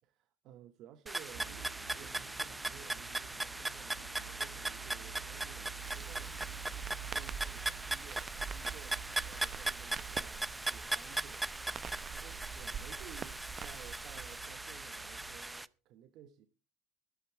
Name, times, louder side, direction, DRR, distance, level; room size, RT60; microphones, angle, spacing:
voice 1, 0.0-6.5 7.1-11.6 12.1-16.5, right 10 dB, 60° right, 1.2 m, -56 dB
sound 1, 1.1-15.7, right 2 dB, 10° right, 0.7 m, -39 dB
sound 2, 1.3-15.4, right 9 dB, 80° right, 2.8 m, -50 dB
Crackle, 5.8-14.4, right 7 dB, 35° right, 0.9 m, -47 dB
14.0 x 12.0 x 4.7 m
supercardioid pair, 95°, 0 cm